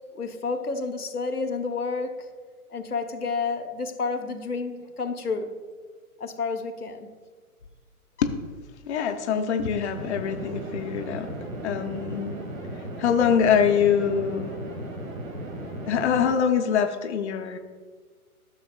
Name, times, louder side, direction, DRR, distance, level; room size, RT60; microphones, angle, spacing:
voice 1, 0.1-2.3 2.7-5.6 6.2-7.1, left 4 dB, 85° left, 0.9 m, -30 dB
voice 2, 8.9-11.3 11.6-12.4 13.0-14.5 15.9-17.6, left 7 dB, 50° left, 0.6 m, -24 dB
sound 1, 9.9-16.3, right 1 dB, 65° right, 1.6 m, -36 dB
13.0 x 6.3 x 2.3 m
figure-of-eight pair, 120°, 44 cm